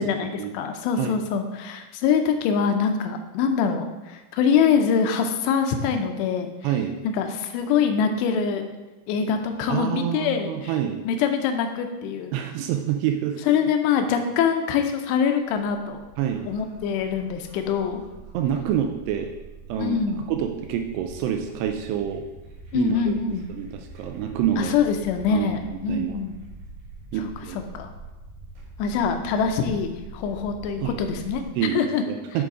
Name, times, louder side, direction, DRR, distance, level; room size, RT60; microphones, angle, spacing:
voice 1, 0.0-6.5 7.0-8.7 9.1-10.7 11.1-12.4 13.5-16.1 16.5-18.0 19.8-20.2 22.7-23.5 24.6-26.4 27.5-27.9 28.8-31.4 31.7-32.0, left 6 dB, 85° left, 6 dB, 2.9 m, -24 dB
voice 2, 6.6-7.0 9.7-11.0 12.3-13.4 16.2-16.5 18.3-19.3 19.7-20.0 20.3-22.2 22.7-23.1 23.5-24.7 25.3-25.5 25.9-26.2 27.1-27.6 30.8-31.0 31.6-32.4, right 9 dB, 85° right, 4 dB, 2.6 m, -27 dB
sound 1, 14.5-31.4, right 3 dB, 65° right, 3.8 m, -44 dB
11.0 x 4.0 x 4.8 m, 1.1 s
omnidirectional pair, 4.9 m